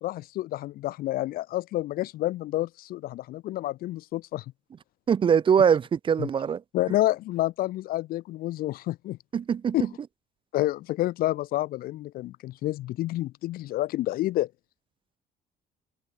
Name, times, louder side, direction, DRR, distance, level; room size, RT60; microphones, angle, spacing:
voice 1, 0.0-4.4 6.2-6.3 6.7-9.2 9.7-9.9 10.5-14.5, left 15 dB, 60° left, 0.4 m, -29 dB
voice 2, 5.1-6.6 9.3-9.8, right 7 dB, 30° right, 0.4 m, -22 dB
cardioid pair, 110°, 17 cm